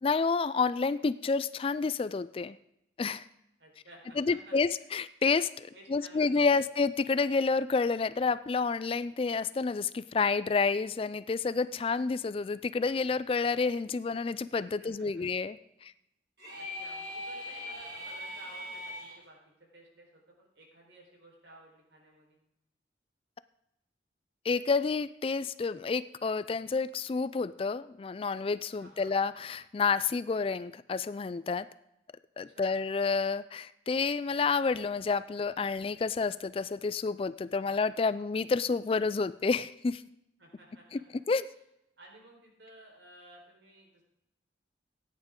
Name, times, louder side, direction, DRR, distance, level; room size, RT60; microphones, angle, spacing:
voice 1, 0.0-2.6 3.0-3.2 4.2-15.9 24.4-31.7 32.4-40.0 40.9-41.0 41.3-41.4, left 4 dB, 30° left, 15 dB, 0.3 m, -29 dB
voice 2, 3.6-4.8 5.7-6.7 14.8-15.2 16.6-19.4 19.7-22.4 28.8-29.1 32.5-32.8 37.5-37.8 40.4-41.0 42.0-44.0, right 1 dB, 80° right, -1 dB, 4.3 m, -55 dB
sound 1, 16.4-19.2, left 1 dB, 60° right, 5.9 m, -40 dB
16.5 x 9.6 x 3.7 m, 0.84 s
head